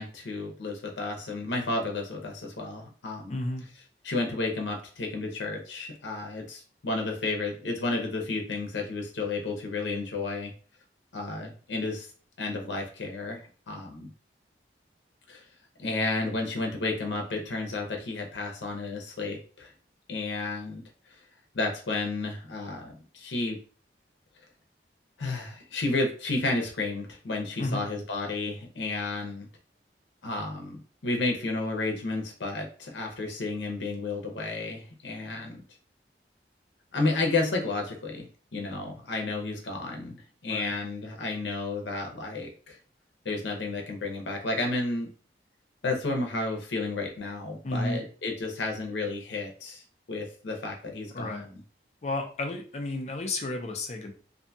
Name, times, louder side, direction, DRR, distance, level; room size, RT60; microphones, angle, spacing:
voice 1, 0.0-3.4 4.0-10.5 11.1-12.1 12.4-13.4 13.7-14.1 15.3-15.4 15.8-19.7 20.1-20.8 21.5-23.6 25.2-29.5 30.2-35.6 36.9-38.3 38.5-40.2 40.4-42.8 43.2-45.1 45.8-49.8 50.1-51.6, left 3 dB, 85° left, 2 dB, 0.6 m, -32 dB
voice 2, 3.3-3.6 27.6-27.9 40.5-40.7 47.6-48.0 51.1-51.5 52.0-54.1, left 2 dB, 40° left, 4 dB, 0.4 m, -32 dB
2.6 x 2.2 x 2.6 m, 0.40 s
head